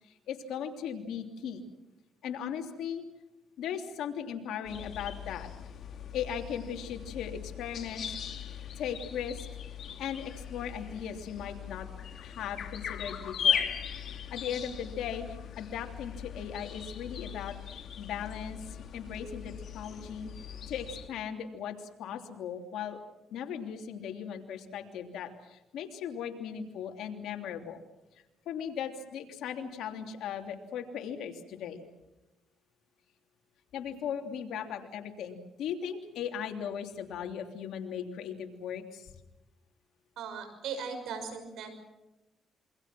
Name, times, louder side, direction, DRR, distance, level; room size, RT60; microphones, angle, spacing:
voice 1, 0.0-1.6 2.2-3.1 3.6-5.5 6.1-8.2 8.8-9.5 10.0-11.9 12.2-13.7 14.1-23.0 23.3-27.8 28.1-31.9 33.7-39.2, left 8 dB, 80° left, 4 dB, 3.1 m, -38 dB
sound 1, 4.6-21.1, left 7 dB, 60° left, 2.6 m, -38 dB
voice 2, 40.2-41.7, right 6 dB, 80° right, 6 dB, 6.1 m, -38 dB
28.0 x 23.5 x 6.2 m, 0.98 s
cardioid pair, 90°, 0 cm